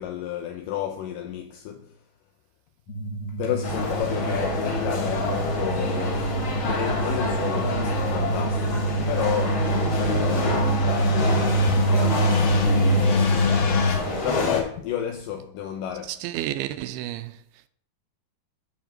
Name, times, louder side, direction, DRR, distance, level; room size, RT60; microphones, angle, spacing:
voice 1, 0.0-2.0 3.4-11.1 11.6-13.9 14.2-16.2, left 10 dB, 80° left, 2.0 m, -32 dB
sound 1, 2.9-14.0, right 1 dB, 65° left, 1.6 m, -24 dB
sound 2, 3.6-14.6, left 2 dB, 40° left, 2.3 m, -28 dB
voice 2, 16.1-17.4, right 13 dB, 80° right, 2.4 m, -31 dB
8.8 x 5.4 x 7.4 m
omnidirectional pair, 4.7 m